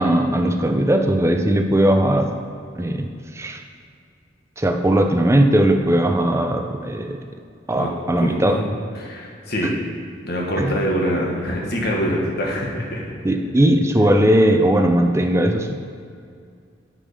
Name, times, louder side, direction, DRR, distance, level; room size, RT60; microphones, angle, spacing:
voice 1, 0.0-2.3 2.8-3.1 3.4-3.6 4.6-7.2 7.7-8.6 10.6-10.8 13.2-15.8, right 1 dB, 15° right, 5 dB, 0.5 m, -18 dB
voice 2, 8.2-8.6 8.9-9.7 10.2-13.1, equal, 55° left, -1 dB, 1.6 m, -24 dB
8.9 x 5.2 x 5.2 m, 2.3 s
head